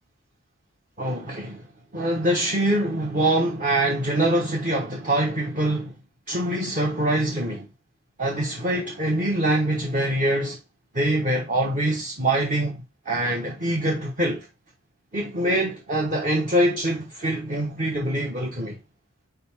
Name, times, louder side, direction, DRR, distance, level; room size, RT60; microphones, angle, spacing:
voice 1, 1.0-1.7 1.9-6.0 6.3-7.7 8.2-10.6 10.9-14.5 15.1-18.8, right 1 dB, 35° right, 1.1 m, -24 dB
4.5 x 4.1 x 5.6 m
head